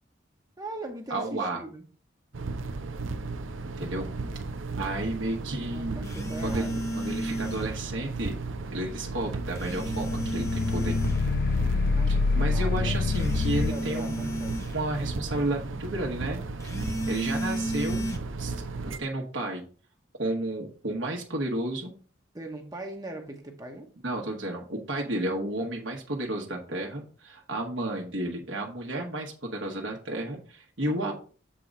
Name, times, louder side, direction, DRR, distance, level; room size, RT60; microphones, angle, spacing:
voice 1, 0.6-1.8 5.7-7.2 11.9-13.1 13.7-14.6 22.3-23.9 30.8-31.1, right 2 dB, 20° right, 2 dB, 0.9 m, -40 dB
voice 2, 1.1-1.6 3.6-4.1 4.8-6.1 6.4-6.7 6.9-8.4 8.7-11.0 12.1-14.4 14.7-16.4 17.1-18.1 18.4-19.6 20.2-21.9 24.0-31.1, right 1 dB, 70° right, 0 dB, 1.3 m, -32 dB
sound 1, 2.3-19.0, right 3 dB, 90° right, 0.7 m, -35 dB
sound 2, 6.0-7.8 9.6-11.3 13.1-14.8 16.6-18.2, right 1 dB, 15° left, 0.9 m, -33 dB
sound 3, 9.8-13.7, left 4 dB, 55° left, 0.4 m, -26 dB
7.6 x 3.8 x 5.3 m, 0.39 s
head